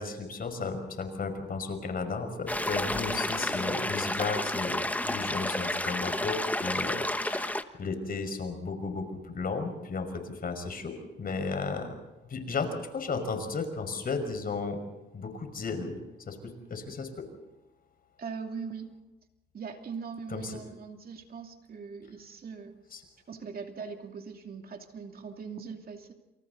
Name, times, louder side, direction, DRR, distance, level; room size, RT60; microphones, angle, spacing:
voice 1, 0.0-11.9 12.2-14.8 15.1-16.0 16.3-17.2 20.3-20.6 22.9-23.0, left 4 dB, 45° left, 7 dB, 5.5 m, -34 dB
sound 1, 2.5-7.6, left 1 dB, 10° left, 1.2 m, -31 dB
voice 2, 18.2-18.9 19.5-22.8 23.3-26.1, right 5 dB, 50° right, 4 dB, 2.7 m, -41 dB
28.0 x 28.0 x 4.1 m, 1.0 s
cardioid pair, 90°, 20 cm